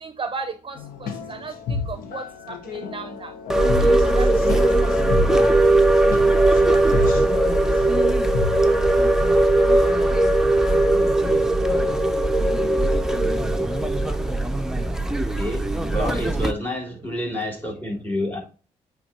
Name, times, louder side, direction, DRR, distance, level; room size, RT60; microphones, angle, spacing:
voice 1, 0.0-3.3 3.7-4.3, right 4 dB, 35° right, 9 dB, 0.7 m, -35 dB
sound 1, 0.8-9.0, left 5 dB, 80° left, 1.2 m, -31 dB
sound 2, 3.5-16.5, right 2 dB, 5° right, 0.9 m, -19 dB
voice 2, 15.1-18.4, left 1 dB, 10° left, 1 dB, 3.7 m, -29 dB
8.6 x 4.1 x 3.0 m, 0.36 s
supercardioid pair, 50°, 15 cm